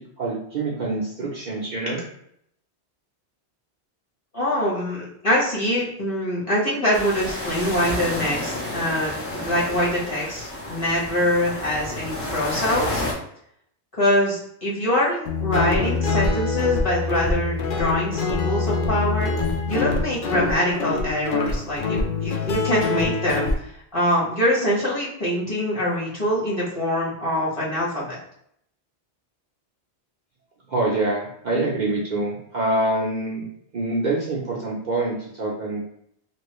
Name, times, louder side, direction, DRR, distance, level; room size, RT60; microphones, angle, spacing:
voice 1, 0.2-2.0 30.7-33.4 33.7-35.8, right 2 dB, 50° right, -4 dB, 0.7 m, -25 dB
voice 2, 4.3-13.0 14.0-19.3 19.7-28.2, left 1 dB, 30° left, -7 dB, 1.2 m, -24 dB
sound 1, 6.9-13.1, left 1 dB, 15° left, 0.5 m, -30 dB
Guitar, 15.3-23.5, left 4 dB, 60° left, 0.6 m, -24 dB
3.0 x 2.7 x 3.0 m, 0.70 s
omnidirectional pair, 1.1 m